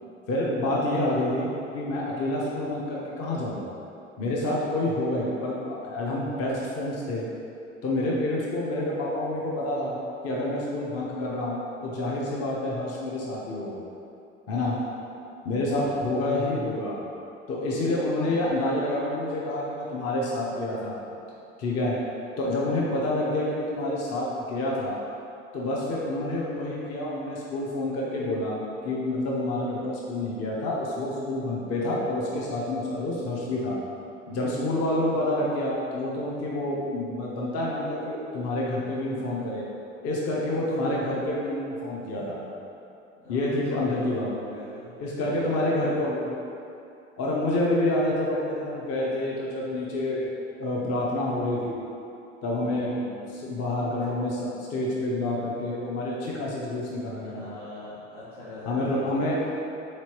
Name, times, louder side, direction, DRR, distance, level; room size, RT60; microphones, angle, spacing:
voice 1, 0.3-3.7 4.2-7.3 7.8-10.0 10.2-13.8 14.5-14.8 15.4-17.0 17.5-21.0 21.6-22.0 22.4-25.0 25.5-33.8 34.3-39.6 40.0-42.4 43.3-44.3 45.0-46.4 47.2-50.3 50.6-51.8 52.4-52.9 53.3-57.6 58.7-59.5, left 1 dB, 40° left, -5 dB, 0.7 m, -28 dB
voice 2, 38.8-39.5 40.7-41.5 42.1-42.2 43.2-44.9 45.2-46.0 52.5-53.2 57.2-59.5, left 2 dB, 80° left, -14 dB, 1.3 m, -43 dB
4.0 x 3.0 x 3.0 m, 2.7 s
hypercardioid pair, 65°, 36 cm